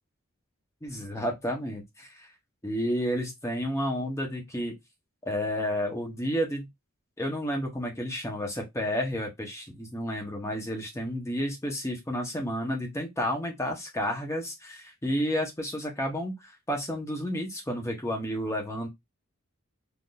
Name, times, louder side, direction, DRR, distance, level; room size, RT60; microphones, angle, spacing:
voice 1, 0.8-2.3 2.6-4.8 5.3-6.7 7.2-18.9, equal, 15° left, 0.7 m, -31 dB
3.5 x 2.6 x 2.3 m
head